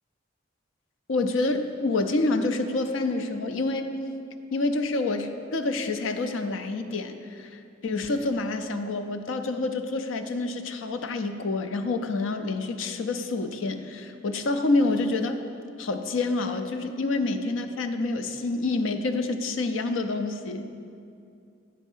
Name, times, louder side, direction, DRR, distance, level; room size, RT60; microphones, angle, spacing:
voice 1, 1.1-4.0 4.5-15.4 15.8-20.7, left 2 dB, 80° left, 8 dB, 0.5 m, -27 dB
9.5 x 4.1 x 5.4 m, 2.5 s
head